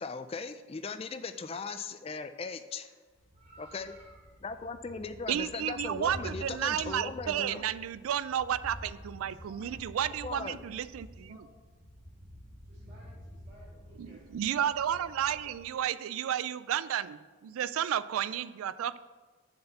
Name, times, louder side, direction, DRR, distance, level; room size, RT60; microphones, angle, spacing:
voice 1, 0.0-2.9 3.6-3.9 4.4-7.7 10.2-10.6, left 4 dB, 25° left, 10 dB, 0.3 m, -38 dB
Thunder, 3.1-15.8, equal, 15° right, 2.0 m, -49 dB
voice 2, 3.3-4.3 5.1-5.3 9.2-9.8 11.0-11.6 12.0-12.1 12.6-15.7 17.2-17.5, right 1 dB, 35° right, -10 dB, 2.0 m, -59 dB
voice 3, 5.3-11.4 14.0-19.0, right 10 dB, 80° right, 15 dB, 0.3 m, -32 dB
6.9 x 4.4 x 6.7 m, 1.4 s
head